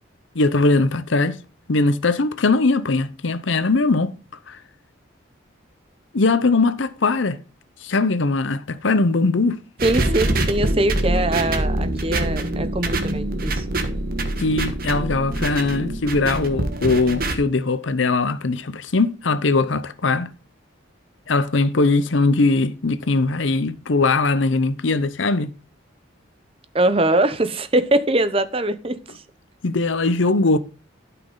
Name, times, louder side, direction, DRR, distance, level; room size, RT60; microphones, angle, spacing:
voice 1, 0.3-1.4 1.7-4.1 4.5-4.6 6.1-7.4 7.8-9.6 14.4-20.3 21.3-25.5 29.6-30.6, left 3 dB, 75° left, 0.8 m, -20 dB
voice 2, 9.8-13.6 26.7-29.0, right 1 dB, 30° right, 0.7 m, -22 dB
sound 1, 9.8-17.4, right 1 dB, 45° right, 1.4 m, -24 dB
12.0 x 6.0 x 3.8 m
head